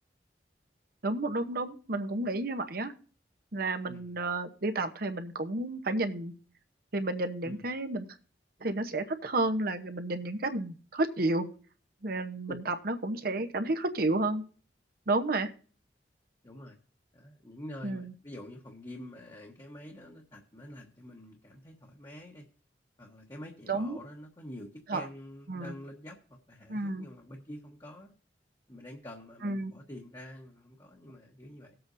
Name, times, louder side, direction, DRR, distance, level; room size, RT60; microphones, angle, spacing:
voice 1, 1.0-2.9 3.5-6.3 6.9-8.1 8.6-11.5 12.0-14.4 15.1-15.5 17.8-18.1 23.7-24.0 24.9-25.1 25.5-25.7 26.7-27.0 29.4-29.7, right 2 dB, 55° right, 7 dB, 0.9 m, -31 dB
voice 2, 3.9-4.2 7.4-7.7 12.5-12.7 16.4-16.8 17.1-22.5 23.0-28.1 28.7-31.8, left 1 dB, 25° left, -1 dB, 1.2 m, -47 dB
18.5 x 7.8 x 2.7 m, 0.41 s
head